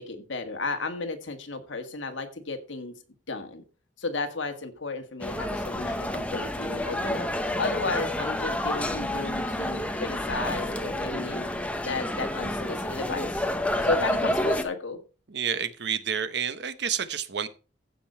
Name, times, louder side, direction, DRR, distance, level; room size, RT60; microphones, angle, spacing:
voice 1, 0.0-3.0 3.3-3.6 4.0-11.4 11.8-13.5 13.8-15.0, left 3 dB, 70° left, 6 dB, 1.7 m, -33 dB
sound 1, 5.2-14.6, left 1 dB, 5° left, 0.8 m, -29 dB
voice 2, 15.3-17.5, right 7 dB, 60° right, 13 dB, 0.8 m, -30 dB
15.0 x 5.3 x 4.3 m, 0.36 s
head